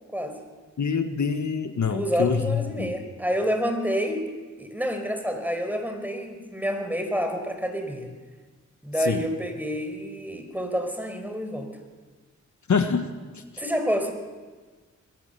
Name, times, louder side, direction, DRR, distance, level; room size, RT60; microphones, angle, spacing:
voice 1, 0.8-2.9 9.0-9.2 12.7-13.1 13.3-13.4, left 6 dB, 70° left, 7 dB, 1.5 m, -25 dB
voice 2, 1.8-4.2 4.6-8.1 8.8-11.7 13.6-14.1, equal, 5° right, 5 dB, 4.8 m, -28 dB
21.5 x 18.0 x 6.9 m, 1.4 s
cardioid pair, 50°, 30 cm